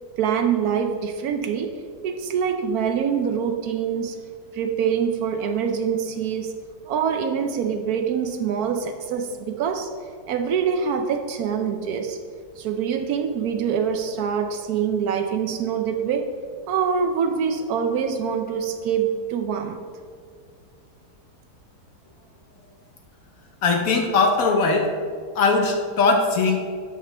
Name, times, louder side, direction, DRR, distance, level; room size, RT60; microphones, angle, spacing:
voice 1, 0.2-4.2 4.5-6.6 6.9-9.9 10.3-12.2 12.6-16.4 16.7-19.8, right 7 dB, 70° right, 7 dB, 0.9 m, -25 dB
voice 2, 23.6-24.9 25.3-26.6, left 3 dB, 60° left, 3 dB, 1.0 m, -20 dB
12.5 x 5.0 x 3.3 m, 2.1 s
omnidirectional pair, 1.9 m